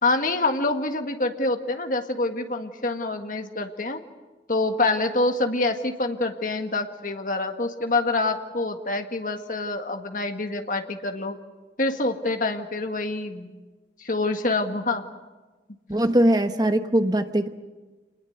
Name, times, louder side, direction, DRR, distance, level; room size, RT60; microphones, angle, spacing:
voice 1, 0.0-4.0 4.5-11.4 11.8-13.5 14.0-15.0, left 2 dB, 50° left, 5 dB, 1.8 m, -26 dB
voice 2, 15.9-17.5, right 1 dB, 20° right, 8 dB, 1.1 m, -21 dB
26.5 x 20.5 x 8.1 m, 1.2 s
head